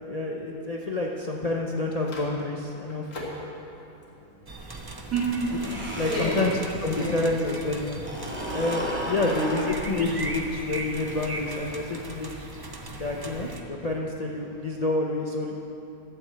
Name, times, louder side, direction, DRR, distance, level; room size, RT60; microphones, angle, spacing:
voice 1, 0.0-3.1 5.8-6.5 6.8-8.0 8.5-12.5 12.9-15.5, left 2 dB, 40° left, -1 dB, 0.5 m, -28 dB
Microwave oven, 1.2-14.9, equal, 70° left, 2.4 m, -48 dB
sound 1, 4.5-13.6, right 2 dB, 25° right, 0.4 m, -38 dB
voice 2, 4.7-6.3 6.9-7.2 9.1-9.6, right 2 dB, 60° right, -10 dB, 2.8 m, -30 dB
sound 2, 5.4-7.2 7.5-12.3, equal, 5° right, 1.9 m, -36 dB
12.0 x 7.0 x 7.6 m, 2.8 s
omnidirectional pair, 1.6 m